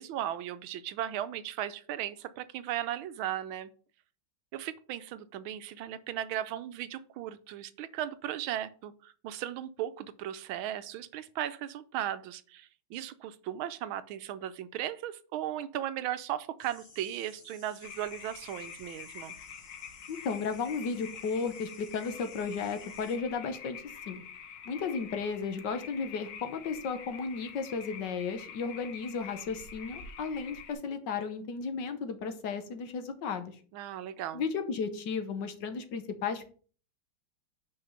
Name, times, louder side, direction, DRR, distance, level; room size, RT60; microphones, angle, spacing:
voice 1, 0.0-3.7 4.5-19.3 33.7-34.4, right 11 dB, 85° right, 13 dB, 1.5 m, -37 dB
sound 1, 16.6-23.2, left 4 dB, 45° left, 1.9 m, -56 dB
sound 2, 17.8-30.7, left 7 dB, 90° left, 2.0 m, -47 dB
voice 2, 20.1-24.2 24.6-33.6 34.3-36.5, left 5 dB, 65° left, 8 dB, 1.5 m, -34 dB
5.8 x 5.1 x 6.5 m, 0.42 s
omnidirectional pair, 2.2 m